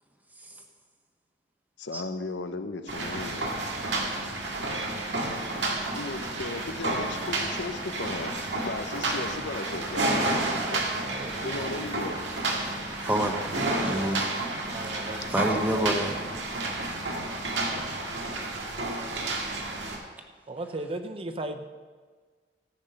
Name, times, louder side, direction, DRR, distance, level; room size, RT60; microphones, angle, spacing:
voice 1, 1.8-3.5 5.9-10.8 11.4-12.2, left 3 dB, 75° left, 8 dB, 0.8 m, -36 dB
sound 1, 2.9-20.0, right 2 dB, 80° right, 1.8 m, -30 dB
voice 2, 11.0-11.8 14.7-15.9 20.5-21.6, right 2 dB, 30° right, 8 dB, 0.7 m, -37 dB
voice 3, 13.1-14.3 15.3-16.2, equal, 10° right, 3 dB, 1.1 m, -28 dB
14.0 x 6.0 x 6.5 m, 1.5 s
head